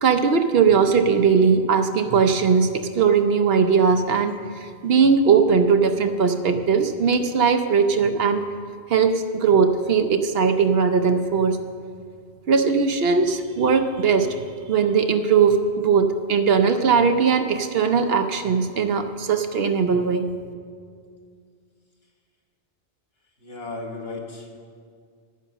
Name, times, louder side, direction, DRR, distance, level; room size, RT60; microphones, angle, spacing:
voice 1, 0.0-8.4 8.9-11.6 12.5-20.2, right 5 dB, 65° right, 7 dB, 0.8 m, -19 dB
voice 2, 23.4-24.5, left 3 dB, 60° left, 1 dB, 1.7 m, -35 dB
11.0 x 9.4 x 6.3 m, 2.1 s
omnidirectional pair, 1.2 m